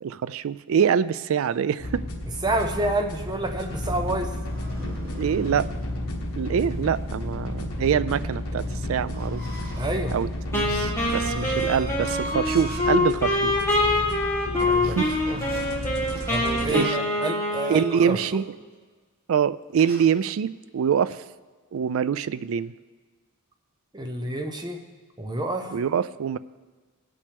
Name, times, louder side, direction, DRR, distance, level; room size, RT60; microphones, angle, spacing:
voice 1, 0.0-2.0 5.2-5.7 6.4-8.6 8.9-9.4 10.1-13.5 14.8-15.1 16.7-17.0 17.7-18.4 19.3-21.2 21.7-22.7 25.7-26.4, right 7 dB, 65° right, 16 dB, 0.3 m, -25 dB
sound 1, 1.8-16.7, left 1 dB, 80° left, 1.3 m, -32 dB
voice 2, 2.4-4.3 9.8-10.2 14.6-15.0 15.3-15.4 16.3-18.2 23.9-24.8 25.2-25.8, right 1 dB, 20° right, 5 dB, 0.8 m, -28 dB
sound 2, 3.5-5.8 9.1-12.9 13.4-13.6 14.5-17.1 19.7-20.0, right 1 dB, 45° right, 1.2 m, -41 dB
Wind instrument woodwind instrument, 10.5-18.4, left 2 dB, 15° left, 1.9 m, -25 dB
17.0 x 8.5 x 3.5 m, 1.4 s
head